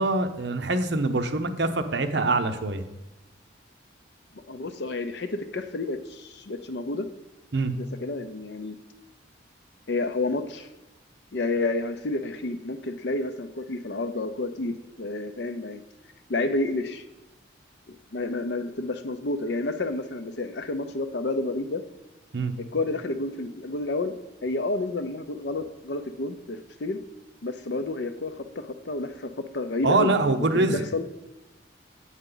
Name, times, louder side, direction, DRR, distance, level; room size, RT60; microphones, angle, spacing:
voice 1, 0.0-2.8 7.5-7.7 22.3-22.5 29.8-30.8, right 2 dB, 65° right, 7 dB, 0.7 m, -24 dB
voice 2, 4.5-7.1 7.8-8.8 9.9-10.7 11.3-15.8 16.3-17.0 17.9-21.8 22.7-24.1 24.4-27.0 27.4-31.0, left 2 dB, 65° left, 9 dB, 0.6 m, -30 dB
8.1 x 7.9 x 3.9 m, 0.99 s
head